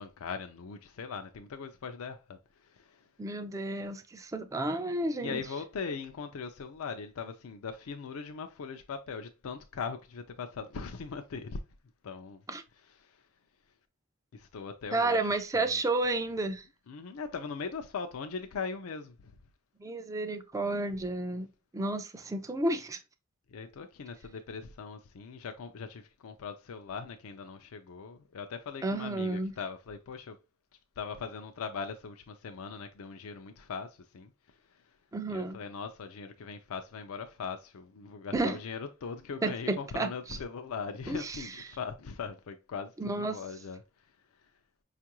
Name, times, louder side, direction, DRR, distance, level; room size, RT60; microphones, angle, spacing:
voice 1, 0.0-3.1 5.2-11.6 12.0-12.4 12.8-13.2 14.3-15.3 15.5-15.8 16.9-19.4 23.5-30.4 31.0-34.3 34.7-34.8 35.3-43.8, left 5 dB, 70° left, 0.4 m, -40 dB
voice 2, 3.2-5.4 12.5-12.6 14.9-16.6 19.8-21.5 21.7-23.0 28.8-29.5 35.1-35.6 38.3-38.6 39.4-40.4 41.1-41.5 43.0-43.4, right 2 dB, 15° right, 0.3 m, -31 dB
5.2 x 2.4 x 2.9 m
head